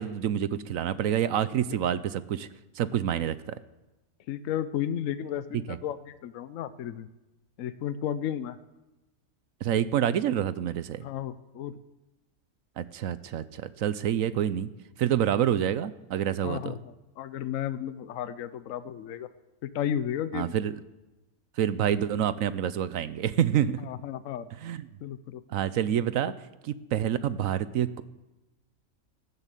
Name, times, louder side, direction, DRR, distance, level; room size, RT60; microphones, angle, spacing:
voice 1, 0.0-2.5 2.8-3.6 5.7-5.8 9.6-11.0 12.8-14.7 15.0-16.8 20.3-20.8 21.6-23.8 24.6-24.9 25.5-26.3 26.6-28.0, right 10 dB, 70° right, 15 dB, 1.0 m, -27 dB
voice 2, 4.3-7.1 7.6-8.6 11.0-11.8 16.4-19.3 19.6-20.5 23.8-24.5 25.0-25.4, left 10 dB, 70° left, 13 dB, 1.0 m, -33 dB
13.0 x 11.0 x 8.3 m, 1.0 s
omnidirectional pair, 1.5 m